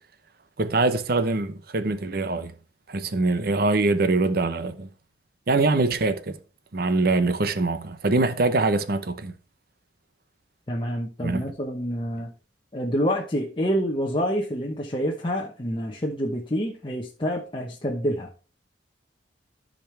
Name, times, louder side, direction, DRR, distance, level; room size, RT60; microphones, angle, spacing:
voice 1, 0.6-2.5 2.9-4.9 5.5-6.4 6.7-9.4 11.2-11.4, right 3 dB, 50° right, 0.8 m, -23 dB
voice 2, 10.7-12.3 12.7-18.3, equal, 25° left, 1.0 m, -27 dB
13.5 x 5.2 x 3.3 m
head